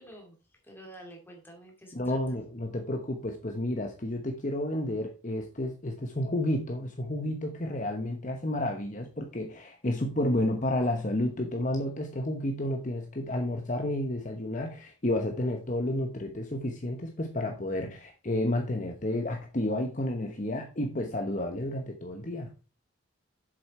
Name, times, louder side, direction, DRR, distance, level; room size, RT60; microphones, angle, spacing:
voice 1, 0.0-2.2, right 1 dB, 10° left, 1 dB, 2.4 m, -49 dB
voice 2, 1.9-22.5, left 1 dB, 40° left, 3 dB, 1.0 m, -31 dB
7.9 x 7.1 x 4.3 m, 0.31 s
head